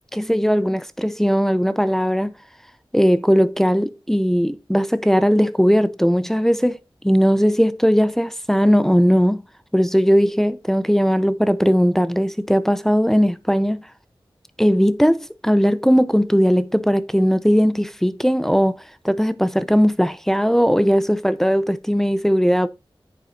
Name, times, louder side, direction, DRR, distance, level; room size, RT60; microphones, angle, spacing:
voice 1, 0.1-2.3 2.9-9.4 9.7-13.9 14.6-18.8 19.0-22.7, equal, 5° left, 0.6 m, -18 dB
9.3 x 7.2 x 2.5 m
wide cardioid pair, 55°, 9 cm